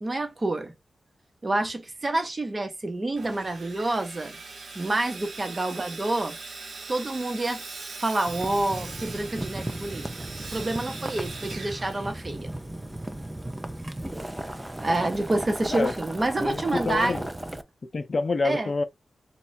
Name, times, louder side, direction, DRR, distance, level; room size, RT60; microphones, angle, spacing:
voice 1, 0.0-0.7 1.4-4.4 4.7-6.4 6.9-7.6 8.0-10.1 10.5-12.5 14.8-17.2 18.4-18.7, right 2 dB, 35° right, 0.9 m, -28 dB
Sawing, 3.1-12.6, right 4 dB, 70° right, 1.0 m, -41 dB
Boiling, 8.3-17.6, right 1 dB, 10° right, 0.4 m, -35 dB
voice 2, 16.4-17.2 17.9-18.8, left 3 dB, 50° left, 0.5 m, -27 dB
3.2 x 2.3 x 3.9 m
wide cardioid pair, 90°, 0 cm